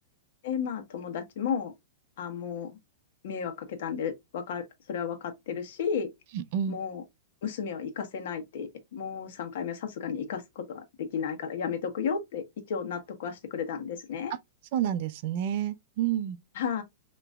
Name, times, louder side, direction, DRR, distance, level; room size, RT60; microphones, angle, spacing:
voice 1, 0.4-1.7 2.2-2.8 3.2-6.1 6.7-7.0 7.4-14.3 16.5-16.8, left 7 dB, 60° left, 1.3 m, -33 dB
voice 2, 6.3-6.8 14.7-16.4, right 10 dB, 45° right, 0.6 m, -29 dB
6.4 x 3.0 x 2.4 m
supercardioid pair, 160°, 0 cm